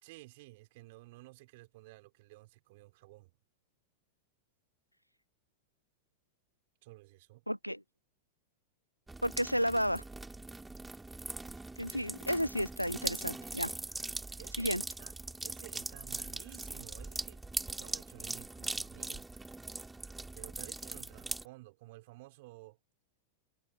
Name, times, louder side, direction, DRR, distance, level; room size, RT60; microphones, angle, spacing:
voice 1, 0.0-3.3 6.8-7.5 14.4-15.1 15.4-17.4 17.7-19.3 20.4-22.8, right 21 dB, 50° right, 3.8 m, -54 dB
voice 2, 7.5-7.8 9.2-10.0 11.8-13.7 14.6-14.8, equal, 90° left, 0.7 m, -32 dB
sound 1, 9.1-21.5, right 2 dB, 10° right, 3.0 m, -41 dB
figure-of-eight pair, 90°, 0 cm